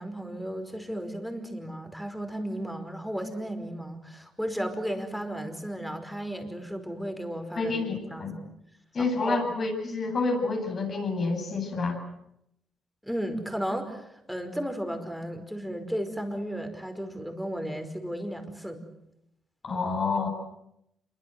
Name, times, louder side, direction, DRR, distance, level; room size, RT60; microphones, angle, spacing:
voice 1, 0.0-7.7 8.1-8.3 9.0-9.4 13.0-18.8, equal, ahead, 6 dB, 5.3 m, -34 dB
voice 2, 7.6-7.9 8.2-8.4 8.9-12.0 19.6-20.3, left 3 dB, 45° left, 4 dB, 7.9 m, -28 dB
27.5 x 23.5 x 7.9 m, 0.82 s
cardioid pair, 90°, 0 cm